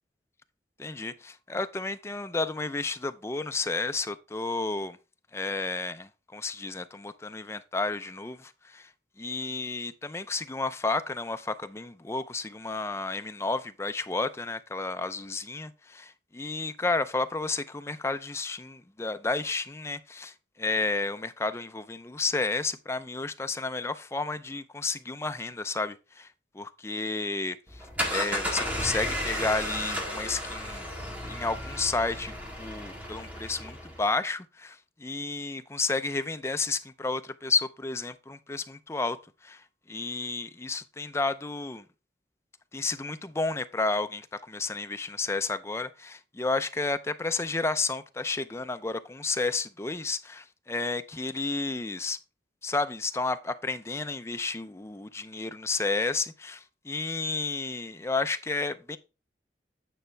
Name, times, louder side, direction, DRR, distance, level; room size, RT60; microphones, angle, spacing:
voice 1, 0.8-5.0 5.3-8.9 9.2-26.3 26.5-27.8 28.1-30.8 31.2-39.2 39.4-39.6 39.9-41.9 42.7-52.2 52.6-59.0, left 3 dB, 15° left, 0.4 m, -31 dB
sound 1, 27.7-34.1, equal, 10° right, 1.7 m, -33 dB
9.2 x 5.6 x 3.3 m
head